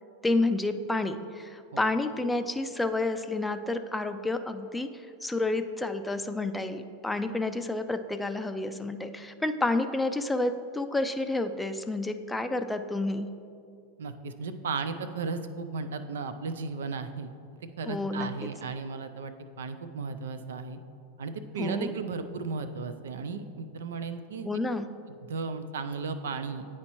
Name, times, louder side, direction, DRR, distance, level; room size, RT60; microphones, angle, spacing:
voice 1, 0.2-4.9 5.2-13.3 17.9-18.3 21.6-21.9 24.4-24.9, left 2 dB, 5° left, 8 dB, 0.3 m, -30 dB
voice 2, 14.0-17.3 17.8-20.8 21.2-24.6 25.1-26.6, right 4 dB, 85° right, 10 dB, 0.4 m, -35 dB
9.5 x 4.3 x 3.0 m, 2.5 s
hypercardioid pair, 115°, 0 cm